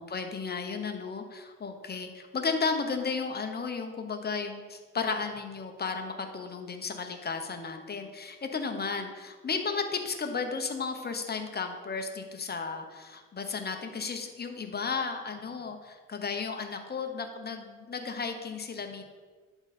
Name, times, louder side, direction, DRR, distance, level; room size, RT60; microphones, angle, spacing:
voice 1, 0.0-19.0, left 5 dB, 35° left, 5 dB, 1.0 m, -34 dB
11.0 x 4.0 x 4.2 m, 1.4 s
cardioid pair, 90°, 30 cm